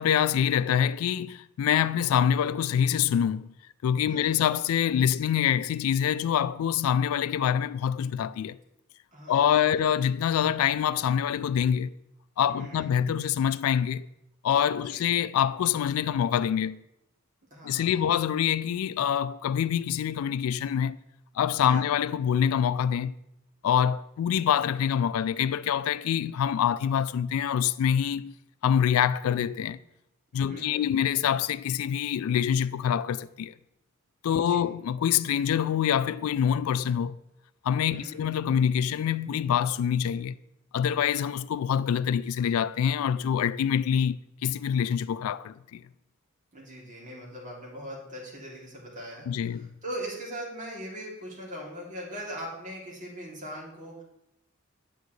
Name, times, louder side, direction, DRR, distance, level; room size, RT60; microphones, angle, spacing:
voice 1, 0.0-3.5 3.8-8.6 9.3-11.9 12.4-14.1 14.4-16.8 17.6-21.0 21.4-23.1 23.6-28.3 28.6-29.8 30.3-33.5 34.2-37.2 37.6-40.3 40.7-45.8 49.3-49.7, left 9 dB, 85° left, 0.3 m, -25 dB
voice 2, 4.0-4.4 9.1-9.6 12.5-12.9 14.8-15.2 17.5-17.9 21.6-21.9 30.3-30.9 34.3-34.7 37.8-38.2 46.5-54.0, right 1 dB, 40° right, 2.6 m, -40 dB
9.0 x 8.0 x 3.1 m
head